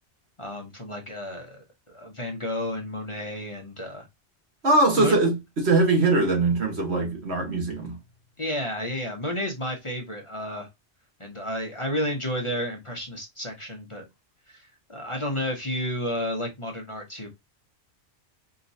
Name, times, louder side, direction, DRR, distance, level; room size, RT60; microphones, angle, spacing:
voice 1, 0.4-4.1 4.9-5.2 8.4-10.7 11.2-14.0 14.5-17.3, equal, 30° left, 0.8 m, -31 dB
voice 2, 4.6-8.0, right 2 dB, 65° right, 1.6 m, -22 dB
4.8 x 2.9 x 2.6 m
omnidirectional pair, 1.2 m